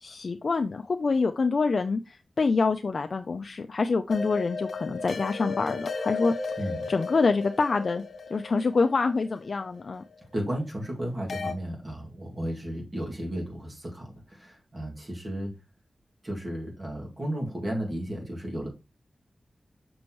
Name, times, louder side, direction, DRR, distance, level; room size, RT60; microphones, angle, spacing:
voice 1, 0.0-6.3 6.9-8.0 8.3-10.0, left 4 dB, 60° left, 7 dB, 0.4 m, -26 dB
sound 1, 4.1-10.1 11.3-11.5, left 4 dB, 80° left, 1.6 m, -35 dB
voice 2, 6.6-6.9 10.3-15.5 16.2-18.7, right 1 dB, 35° right, -1 dB, 2.3 m, -34 dB
6.1 x 6.1 x 3.1 m, 0.27 s
wide cardioid pair, 105°, 0 cm